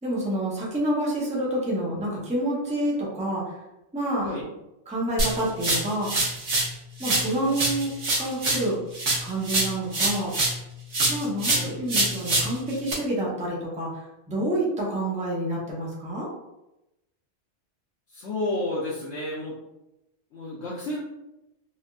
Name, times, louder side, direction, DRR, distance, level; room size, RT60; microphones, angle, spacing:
voice 1, 0.0-3.6 3.9-4.3 4.9-6.1 7.0-7.9 8.2-8.8 9.2-10.3 11.1-16.3, right 1 dB, 10° right, -5 dB, 0.5 m, -28 dB
sound 1, 5.2-6.7 7.0-10.6 10.9-12.9, right 2 dB, 80° right, 1.2 m, -25 dB
voice 2, 18.1-19.6 20.3-21.0, left 1 dB, 75° left, -7 dB, 0.9 m, -31 dB
3.3 x 2.4 x 2.2 m, 0.92 s
omnidirectional pair, 1.2 m